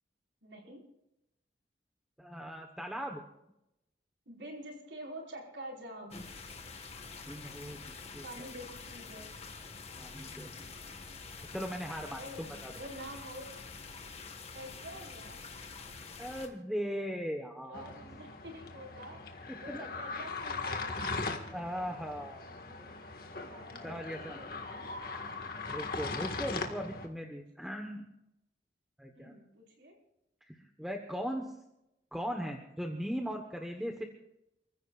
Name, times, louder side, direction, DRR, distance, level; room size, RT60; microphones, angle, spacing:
voice 1, 0.4-0.8 4.2-6.2 8.2-9.3 12.1-12.4 12.7-13.5 14.5-15.5 17.4-21.2 22.4-22.8 23.5-24.9 29.1-29.9, right 1 dB, 90° right, 0 dB, 5.1 m, -47 dB
voice 2, 2.2-3.2 7.3-8.2 10.0-10.7 11.5-12.7 16.2-17.9 19.5-19.9 21.5-22.4 22.8-22.9 23.8-24.4 25.7-28.1 29.0-29.3 30.5-31.6 32.1-34.0, equal, ahead, 2 dB, 1.2 m, -39 dB
sound 1, 6.1-16.5, left 4 dB, 35° left, 1.6 m, -47 dB
sound 2, 17.7-27.1, left 3 dB, 55° left, 1.8 m, -40 dB
29.0 x 15.5 x 2.5 m, 0.86 s
head